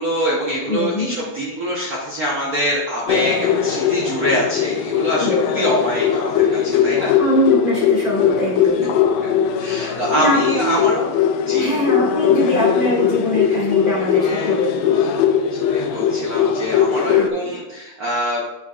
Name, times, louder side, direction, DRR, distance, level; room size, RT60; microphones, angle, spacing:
voice 1, 0.0-7.1 9.2-9.3 9.6-11.2 11.5-11.8 14.0-14.7 14.9-15.2 15.5-18.5, equal, 80° right, -5 dB, 0.8 m, -24 dB
voice 2, 0.7-1.1 5.2-5.4 7.2-8.9 9.8-10.8 11.6-15.0 17.1-17.3, equal, 20° left, -6 dB, 1.6 m, -22 dB
sound 1, 3.1-17.3, left 8 dB, 80° left, 1.6 m, -19 dB
9.2 x 5.9 x 2.4 m, 1.0 s
omnidirectional pair, 3.4 m